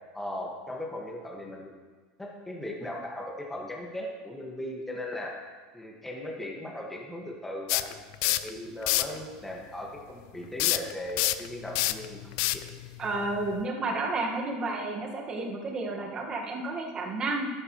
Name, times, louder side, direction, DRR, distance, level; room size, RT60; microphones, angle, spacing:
voice 1, 0.1-1.7 2.2-5.3 5.7-12.2 12.5-12.6, left 1 dB, 10° left, -2 dB, 1.9 m, -38 dB
sound 1, 7.7-8.5 8.8-9.2 10.6-13.6, left 17 dB, 65° left, 0.4 m, -27 dB
voice 2, 13.0-17.5, right 2 dB, 30° right, 0 dB, 1.8 m, -31 dB
12.0 x 9.8 x 3.2 m, 1.4 s
supercardioid pair, 115°, 3 cm